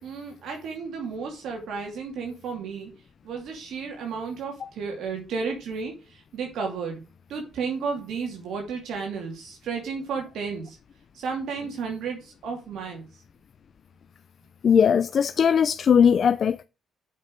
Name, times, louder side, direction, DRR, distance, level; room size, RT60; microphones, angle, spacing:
voice 1, 0.0-2.9 3.2-7.0 7.3-10.8 11.1-13.1, right 5 dB, 75° right, 2.6 m, -33 dB
voice 2, 14.6-16.6, left 7 dB, 55° left, 0.4 m, -19 dB
7.5 x 5.8 x 7.4 m
cardioid pair, 90°, 0 cm